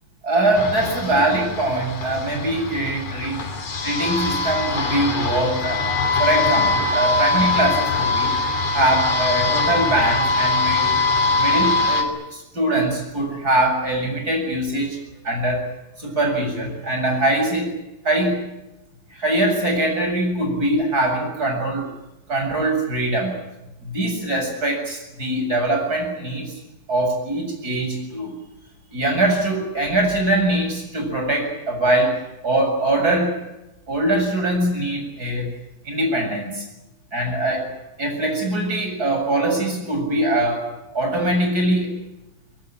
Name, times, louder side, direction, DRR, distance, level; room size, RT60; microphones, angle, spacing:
voice 1, 0.2-3.4 3.8-5.9 6.2-8.3 8.7-10.9 11.4-15.0 15.2-15.7 16.0-17.7 18.0-18.4 19.1-21.9 22.3-23.4 23.8-26.5 26.9-28.3 28.9-33.4 33.9-35.5 35.8-36.7 37.1-37.7 38.0-42.0, right 1 dB, 25° right, 3 dB, 7.7 m, -22 dB
sound 1, 0.6-12.0, left 3 dB, 55° left, 4.5 m, -22 dB
23.5 x 23.0 x 9.0 m, 0.94 s
omnidirectional pair, 4.0 m